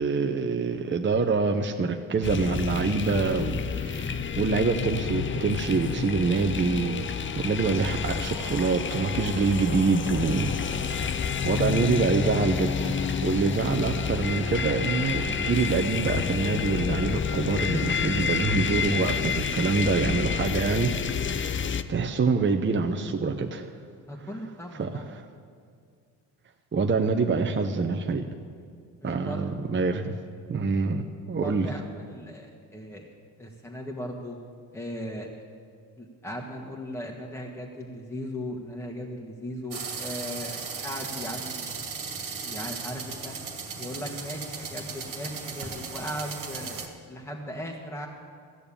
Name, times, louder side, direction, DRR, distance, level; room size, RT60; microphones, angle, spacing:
voice 1, 0.0-7.1 7.3-23.8 24.7-25.2 26.7-28.2 29.0-30.1 30.5-31.7, right 4 dB, 25° right, 5 dB, 0.9 m, -26 dB
sound 1, 2.2-21.8, left 7 dB, 25° left, 0.6 m, -29 dB
sound 2, 4.8-20.6, left 3 dB, 55° left, 1.9 m, -45 dB
voice 2, 24.1-25.1 29.0-29.6 31.3-33.0 33.4-34.4 34.7-35.3 36.0-41.9 42.4-43.3 43.8-48.1, equal, 5° left, -1 dB, 1.8 m, -37 dB
sound 3, 39.7-46.9, right 5 dB, 45° right, 2.0 m, -36 dB
14.5 x 6.8 x 8.7 m, 2.2 s
hypercardioid pair, 60°, 44 cm